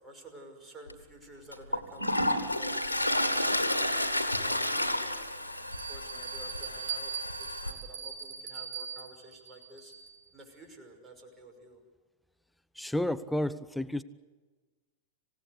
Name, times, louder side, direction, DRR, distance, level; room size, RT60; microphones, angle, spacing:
voice 1, 0.0-3.9 4.4-7.1 7.4-9.9 10.3-11.8, right 1 dB, 15° right, 2 dB, 5.8 m, -51 dB
Toilet flush, 0.9-1.0 1.5-7.7, left 1 dB, 90° right, 1.7 m, -31 dB
Bell, 5.7-10.3, right 6 dB, 40° right, 6.5 m, -40 dB
voice 2, 12.8-14.0, left 1 dB, ahead, 13 dB, 0.7 m, -31 dB
27.0 x 17.0 x 8.1 m, 1.3 s
figure-of-eight pair, 90°, 0 cm